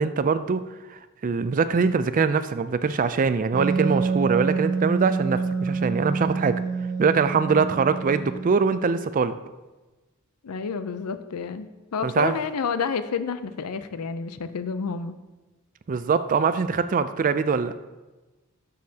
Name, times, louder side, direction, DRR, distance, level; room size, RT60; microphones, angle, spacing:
voice 1, 0.0-6.6 7.0-9.3 12.0-12.3 15.9-17.7, right 5 dB, 35° right, 12 dB, 0.4 m, -23 dB
Wind instrument woodwind instrument, 3.5-8.9, right 4 dB, 55° right, 1.4 m, -27 dB
voice 2, 10.4-15.2, left 5 dB, 90° left, 12 dB, 0.5 m, -29 dB
12.5 x 6.5 x 2.8 m, 1.2 s
head